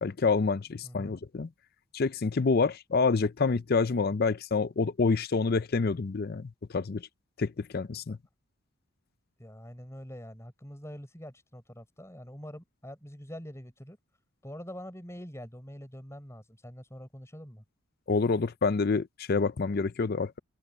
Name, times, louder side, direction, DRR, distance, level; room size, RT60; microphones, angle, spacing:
voice 1, 0.0-1.5 1.9-7.1 7.4-8.2 18.1-20.4, left 4 dB, 45° left, 0.5 m, -27 dB
voice 2, 0.8-1.2 8.1-8.2 9.4-14.0 14.4-17.6, equal, 15° left, 5.8 m, -45 dB
open air
head